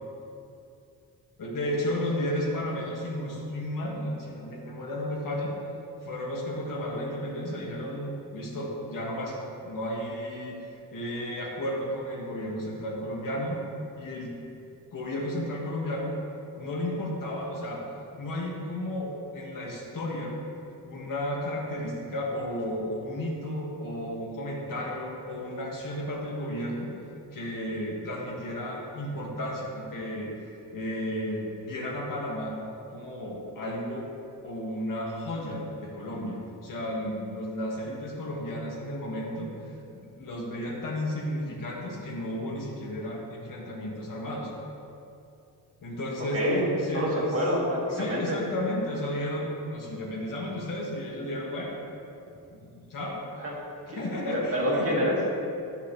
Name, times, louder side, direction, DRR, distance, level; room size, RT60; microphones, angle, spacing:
voice 1, 1.4-5.5 6.0-9.4 9.6-13.6 14.0-14.3 14.9-16.1 16.6-17.9 18.2-20.3 20.8-26.9 27.3-32.6 32.9-34.1 34.4-39.5 39.9-44.5 45.8-47.4 47.9-51.8 52.5-53.2 53.9-55.0, left 1 dB, 60° left, -3 dB, 2.1 m, -33 dB
voice 2, 46.3-46.7 46.9-48.4 53.4-53.5 53.9-54.0 54.3-55.3, equal, 40° right, -4 dB, 2.0 m, -27 dB
12.5 x 7.2 x 3.3 m, 2.6 s
cardioid pair, 135°, 37 cm